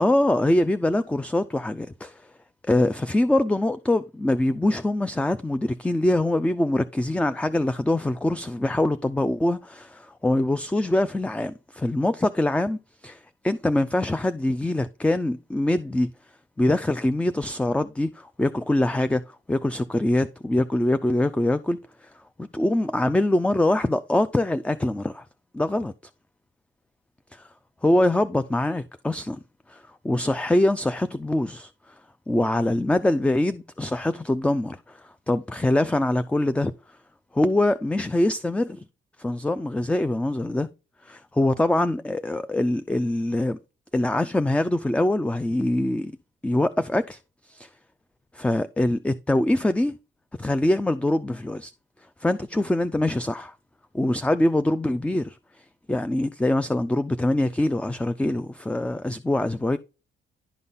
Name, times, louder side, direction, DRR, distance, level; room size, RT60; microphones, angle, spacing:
voice 1, 0.0-2.3 2.6-16.1 16.6-25.2 25.5-25.9 27.3-27.5 27.8-29.4 29.7-32.0 32.3-36.7 37.3-38.8 39.2-40.7 41.0-43.6 43.9-46.2 46.4-47.7 48.3-49.9 50.4-51.7 52.2-53.5 53.9-59.8, left 1 dB, 5° left, 0.4 m, -24 dB
11.0 x 4.0 x 3.7 m
cardioid pair, 90°, 20 cm